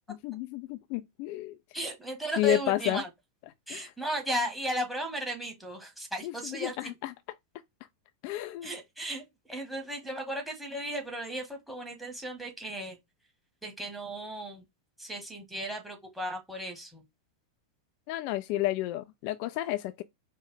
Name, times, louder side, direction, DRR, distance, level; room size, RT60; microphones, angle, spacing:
voice 1, 0.1-1.6 2.4-3.0 3.7-3.9 6.2-7.1 8.2-8.7 18.1-20.0, left 15 dB, 45° left, 0.3 m, -31 dB
voice 2, 1.7-3.1 3.7-6.8 8.6-9.2 9.5-13.0 13.6-14.6 15.0-17.0, right 1 dB, 5° right, 1.5 m, -35 dB
4.5 x 2.1 x 3.8 m
figure-of-eight pair, 90°, 0 cm